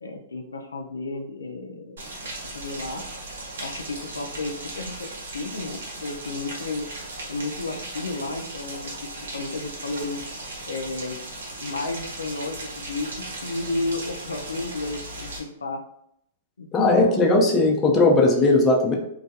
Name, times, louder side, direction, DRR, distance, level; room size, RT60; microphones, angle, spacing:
voice 1, 0.0-2.1 2.5-3.0 3.6-6.9 7.3-10.2 10.7-11.2 11.6-15.8 16.6-17.5, left 2 dB, 85° left, 3 dB, 0.3 m, -32 dB
Rain, 2.0-15.4, right 2 dB, 75° right, 0.7 m, -37 dB
voice 2, 16.7-19.0, left 2 dB, 25° left, 0 dB, 0.5 m, -18 dB
2.2 x 2.2 x 2.7 m, 0.75 s
hypercardioid pair, 115°, 0 cm